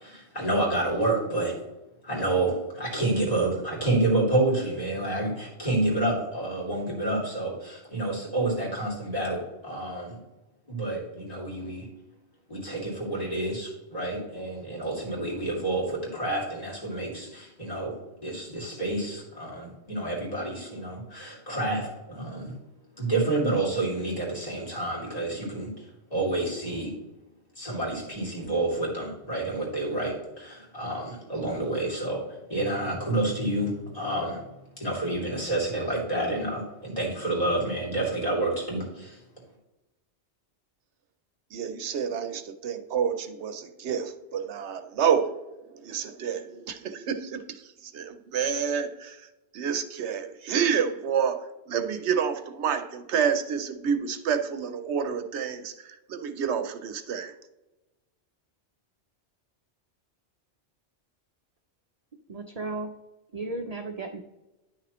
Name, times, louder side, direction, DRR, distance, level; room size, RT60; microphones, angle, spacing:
voice 1, 0.0-1.5 2.0-10.2 10.7-11.9 12.5-17.9 18.2-22.5 23.0-25.7 26.1-26.9 27.6-34.4 34.8-39.2, right 2 dB, 35° left, -4 dB, 2.6 m, -29 dB
voice 2, 41.5-45.4 45.6-57.3, right 7 dB, 75° right, 9 dB, 0.9 m, -29 dB
voice 3, 62.3-62.9 63.3-64.2, right 3 dB, 45° right, 5 dB, 0.6 m, -34 dB
10.0 x 6.0 x 3.0 m, 1.0 s
omnidirectional pair, 1.2 m